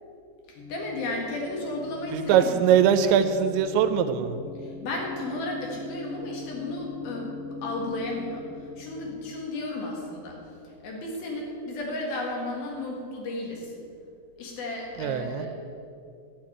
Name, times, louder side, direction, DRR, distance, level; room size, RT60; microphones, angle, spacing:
voice 1, 0.5-2.5 4.6-7.3 7.6-13.8 14.4-15.5, left 2 dB, 60° left, -1 dB, 3.2 m, -34 dB
sound 1, 0.6-9.2, left 5 dB, 85° left, 1.8 m, -41 dB
voice 2, 2.1-4.4 15.0-15.5, right 8 dB, 85° right, 10 dB, 2.8 m, -22 dB
11.5 x 6.9 x 8.8 m, 2.5 s
omnidirectional pair, 5.3 m